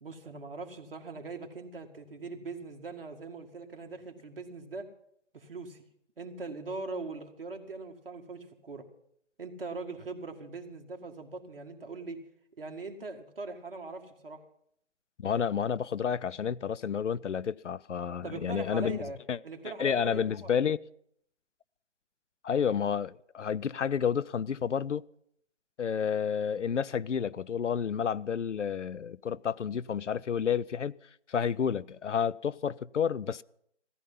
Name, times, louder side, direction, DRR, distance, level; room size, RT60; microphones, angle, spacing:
voice 1, 0.0-4.9 5.3-5.8 6.2-8.8 9.4-12.2 12.6-14.4 18.2-19.2 19.4-20.5, right 3 dB, 50° right, 2.1 m, -41 dB
voice 2, 15.2-19.0 19.3-19.4 19.8-20.8 22.4-25.0 25.8-30.9 31.3-33.4, left 7 dB, 80° left, 0.6 m, -30 dB
16.0 x 14.0 x 5.6 m
figure-of-eight pair, 165°, 36 cm